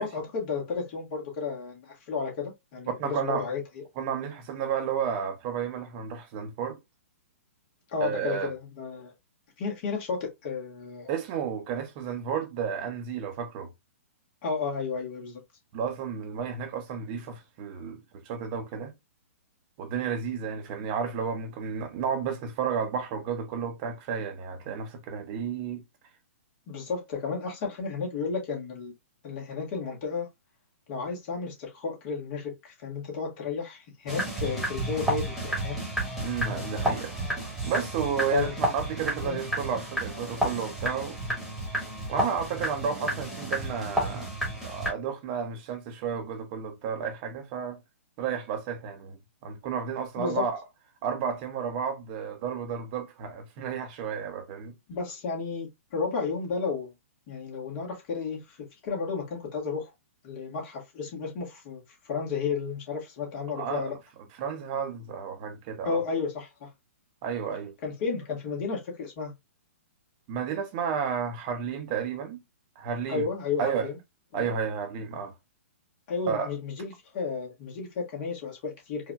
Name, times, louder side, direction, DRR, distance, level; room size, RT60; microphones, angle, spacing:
voice 1, 0.0-3.8 7.9-9.1 9.6-11.1 14.4-15.4 26.7-28.9 29.2-30.3 30.9-35.8 38.3-38.5 39.2-39.4 50.2-50.5 54.9-56.9 57.3-59.9 60.2-64.0 65.8-66.7 67.8-69.3 73.1-74.0 74.3-74.5 76.1-79.1, left 5 dB, 40° left, 1.9 m, -33 dB
voice 2, 3.0-3.5 4.0-6.8 8.0-8.5 11.1-13.7 15.7-18.0 18.2-18.9 19.8-25.8 36.2-37.1 37.6-41.2 42.1-44.3 44.6-47.8 48.2-49.2 49.4-50.6 51.0-54.7 63.5-63.8 64.4-66.0 67.2-67.7 70.3-72.4 72.8-73.2 73.6-73.9 74.3-75.3 76.3-76.5, right 7 dB, 40° right, 0.9 m, -32 dB
sound 1, 34.1-44.9, right 1 dB, ahead, 1.6 m, -31 dB
4.6 x 2.7 x 2.3 m
hypercardioid pair, 130°, 8 cm